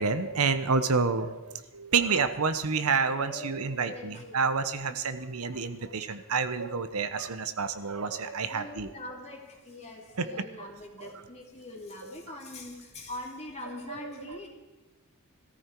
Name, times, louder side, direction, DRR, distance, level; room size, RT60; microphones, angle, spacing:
voice 1, 0.0-8.9 10.1-10.7 11.0-11.2 12.0-12.4 14.0-14.5, right 5 dB, 75° right, 10 dB, 0.9 m, -29 dB
voice 2, 3.2-4.4 5.0-5.1 5.5-5.6 8.5-14.5, left 1 dB, 30° left, 0 dB, 2.7 m, -43 dB
17.5 x 14.0 x 4.6 m, 1.1 s
head